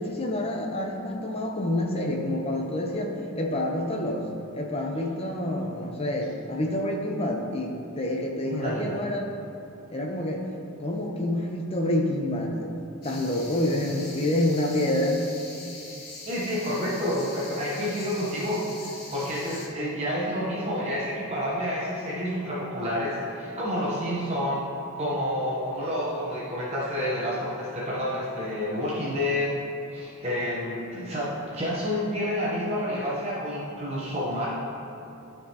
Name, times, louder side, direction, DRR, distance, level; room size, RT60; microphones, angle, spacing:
voice 1, 0.0-4.3 4.5-9.2 9.9-10.5 10.8-12.8 13.0-15.2, left 1 dB, 25° left, 1 dB, 0.7 m, -28 dB
voice 2, 8.5-8.9 16.2-24.6 24.9-29.5 29.9-34.5, equal, 30° right, -7 dB, 0.9 m, -29 dB
sound 1, 13.0-19.7, left 3 dB, 45° left, 1.1 m, -43 dB
12.5 x 4.5 x 2.9 m, 2.9 s
head